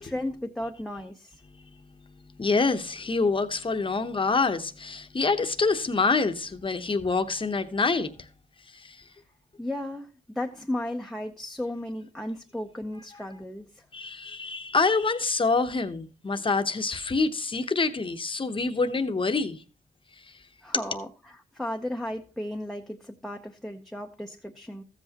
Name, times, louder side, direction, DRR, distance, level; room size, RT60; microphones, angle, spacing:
voice 1, 0.0-1.3 9.6-10.1 10.3-13.8 20.6-24.8, left 1 dB, ahead, 0.7 m, -34 dB
voice 2, 2.4-8.1 8.8-9.0 13.9-19.6, left 4 dB, 30° left, 1.0 m, -26 dB
14.5 x 7.9 x 2.9 m
cardioid pair, 100°, 19 cm